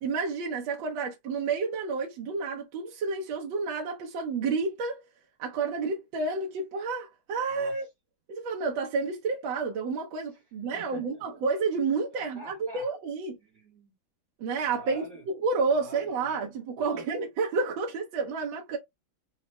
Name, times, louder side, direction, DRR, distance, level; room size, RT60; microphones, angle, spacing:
voice 1, 0.0-5.0 5.4-7.8 8.3-13.4 14.4-18.8, right 4 dB, 75° right, 1.5 m, -30 dB
voice 2, 7.5-7.9 10.7-11.2 12.1-12.9 13.4-13.9 14.7-15.2 15.7-17.0, right 2 dB, 50° right, 1.3 m, -47 dB
4.2 x 2.1 x 3.0 m
omnidirectional pair, 2.2 m